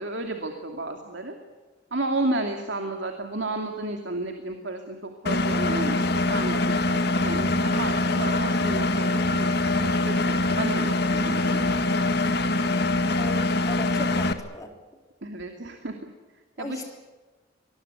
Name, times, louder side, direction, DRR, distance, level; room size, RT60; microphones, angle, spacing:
voice 1, 0.0-1.4 1.9-11.7 15.2-16.0 16.6-16.8, right 2 dB, 65° right, 4 dB, 2.6 m, -32 dB
Engine, 5.3-14.3, left 2 dB, 55° left, 1.9 m, -24 dB
voice 2, 13.1-14.7 16.6-16.8, left 1 dB, 20° left, 4 dB, 3.6 m, -37 dB
24.5 x 21.0 x 8.2 m, 1.3 s
head